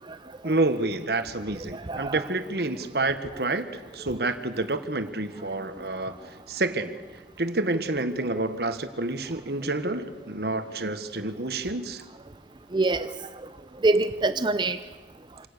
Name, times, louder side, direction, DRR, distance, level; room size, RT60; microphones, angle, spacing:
voice 1, 0.4-6.1 6.5-7.0 7.4-12.0, right 2 dB, 60° right, 10 dB, 1.5 m, -28 dB
voice 2, 1.7-2.3 12.7-13.1 13.8-14.8, right 2 dB, 25° right, 12 dB, 0.6 m, -24 dB
26.5 x 18.0 x 6.8 m, 1.3 s
head